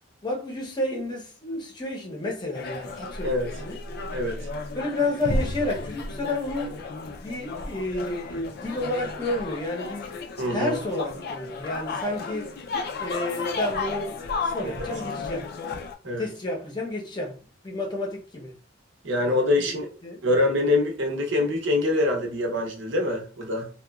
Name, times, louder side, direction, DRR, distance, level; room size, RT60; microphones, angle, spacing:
voice 1, 0.2-3.8 4.7-6.8 7.2-10.1 10.5-12.5 13.0-14.2 14.4-15.5 16.2-17.4 17.6-18.5 19.2-19.7 20.0-20.2, left 1 dB, 25° left, 0.7 m, -31 dB
sound 1, 2.5-15.9, left 3 dB, 55° left, 0.4 m, -33 dB
voice 2, 4.1-4.5 10.4-10.8 14.6-14.7 16.0-16.2 19.0-19.9 20.2-23.7, left 2 dB, 70° right, 0.7 m, -24 dB
2.9 x 2.1 x 2.3 m
head